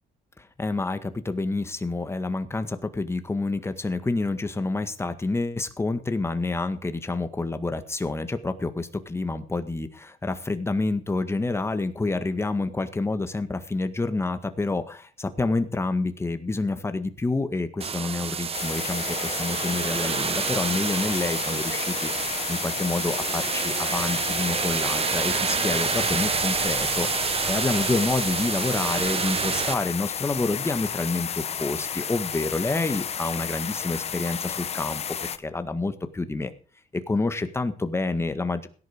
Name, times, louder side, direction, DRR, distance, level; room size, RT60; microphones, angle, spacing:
voice 1, 0.4-36.5 36.9-38.7, left 3 dB, 15° left, 9 dB, 1.7 m, -28 dB
sound 1, 17.8-29.7, right 6 dB, 35° right, 1.2 m, -28 dB
sound 2, 18.5-35.4, left 7 dB, 40° left, 1.1 m, -32 dB
17.0 x 10.5 x 5.1 m, 0.40 s
cardioid pair, 110°, 17 cm